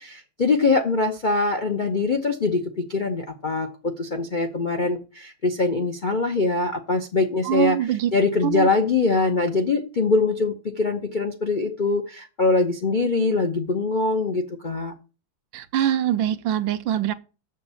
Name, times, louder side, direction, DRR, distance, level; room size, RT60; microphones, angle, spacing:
voice 1, 0.0-14.9, left 3 dB, 55° left, 0.5 m, -23 dB
voice 2, 7.4-8.1 8.4-8.7 15.5-17.1, right 11 dB, 75° right, 1.3 m, -23 dB
7.2 x 6.1 x 6.9 m
omnidirectional pair, 2.2 m